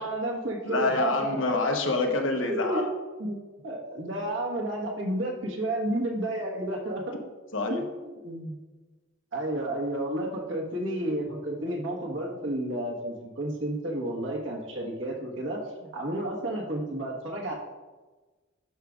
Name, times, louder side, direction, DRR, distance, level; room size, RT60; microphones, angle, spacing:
voice 1, 0.0-1.3 2.5-2.9 3.2-3.4 3.6-7.1 7.7-8.6 9.3-17.5, right 1 dB, 80° right, 0 dB, 1.4 m, -31 dB
voice 2, 0.6-2.9 7.5-7.9, left 2 dB, 90° left, 4 dB, 1.0 m, -26 dB
11.0 x 5.1 x 2.4 m, 1.2 s
head